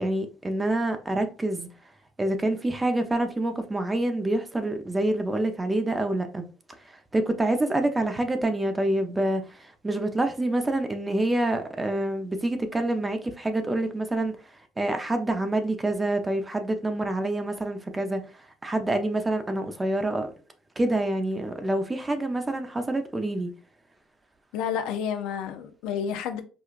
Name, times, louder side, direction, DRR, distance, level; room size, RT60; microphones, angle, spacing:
voice 1, 0.0-1.7 2.2-6.4 6.8-14.4 14.8-18.3 18.6-20.3 20.8-23.5, right 1 dB, 20° right, 0.7 m, -27 dB
voice 2, 24.5-26.4, left 8 dB, 80° left, 0.5 m, -30 dB
4.8 x 2.3 x 2.4 m
supercardioid pair, 80°, 0 cm